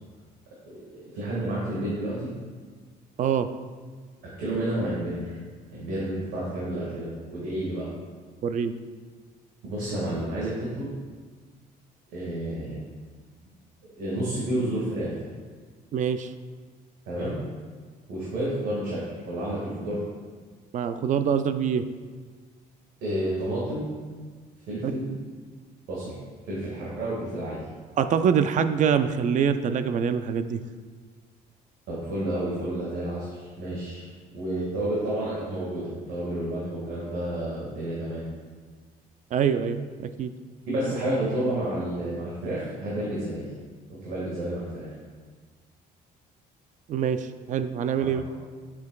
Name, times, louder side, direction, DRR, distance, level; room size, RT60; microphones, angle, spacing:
voice 1, 0.7-2.3 4.2-5.4 5.7-7.9 9.6-10.9 12.1-12.8 13.9-15.2 17.1-17.4 18.1-19.0 19.3-20.0 23.0-24.0 24.7-25.1 25.9-26.1 26.4-27.6 31.9-34.1 34.3-38.2 40.7-43.4 43.9-44.9 48.0-48.1, right 1 dB, 90° right, -7 dB, 2.0 m, -30 dB
voice 2, 8.4-8.7 15.9-16.3 20.7-21.8 24.8-24.9 28.0-30.6 39.3-39.8 40.2-40.3 46.9-48.2, right 7 dB, 50° right, 10 dB, 0.4 m, -24 dB
8.3 x 6.9 x 2.4 m, 1.5 s
cardioid pair, 110°, 17 cm